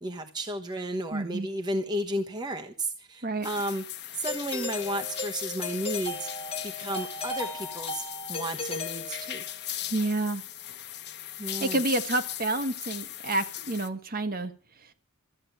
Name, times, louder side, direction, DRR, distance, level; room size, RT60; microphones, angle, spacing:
voice 1, 0.0-3.8 4.1-6.3 6.6-9.4 11.4-11.8, right 1 dB, 20° right, 4 dB, 1.1 m, -33 dB
voice 2, 1.1-1.5 3.2-3.5 9.9-10.4 11.6-14.5, right 2 dB, 40° right, 8 dB, 1.5 m, -29 dB
sound 1, 3.4-13.9, left 11 dB, 50° left, 1.2 m, -38 dB
Doorbell, 4.3-9.7, left 2 dB, 25° left, 2.2 m, -37 dB
13.5 x 8.6 x 9.1 m, 0.38 s
head